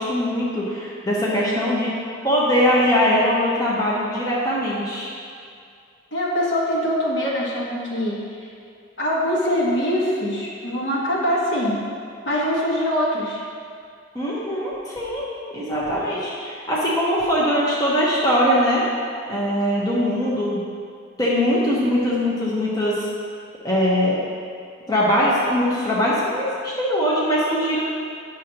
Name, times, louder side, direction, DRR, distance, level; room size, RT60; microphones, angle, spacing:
voice 1, 0.0-1.9 2.2-5.1 14.1-15.3 15.5-18.8 19.3-20.6 21.2-23.1 23.6-24.2 24.9-27.8, equal, 20° left, -7 dB, 0.9 m, -21 dB
voice 2, 6.1-8.5 9.0-11.8 12.2-13.4, equal, 60° left, -5 dB, 1.5 m, -23 dB
9.2 x 6.3 x 2.9 m, 2.3 s
head